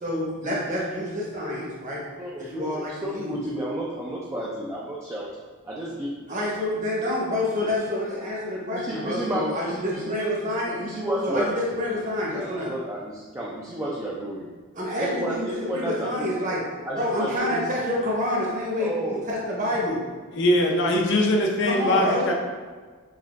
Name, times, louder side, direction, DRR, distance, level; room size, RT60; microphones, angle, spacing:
voice 1, 0.0-2.0 2.4-3.4 6.3-10.8 11.2-12.7 14.7-16.6 16.9-20.0 21.6-22.3, left 1 dB, 35° right, -4 dB, 0.9 m, -28 dB
voice 2, 2.2-5.3 5.6-6.1 8.7-10.1 10.4-11.5 12.3-14.5 15.0-16.3 16.8-17.6 18.8-19.2 20.9-21.0, right 1 dB, 15° right, -6 dB, 0.4 m, -31 dB
voice 3, 20.3-22.3, left 1 dB, 55° left, 1 dB, 0.5 m, -21 dB
5.6 x 2.6 x 2.5 m, 1.5 s
head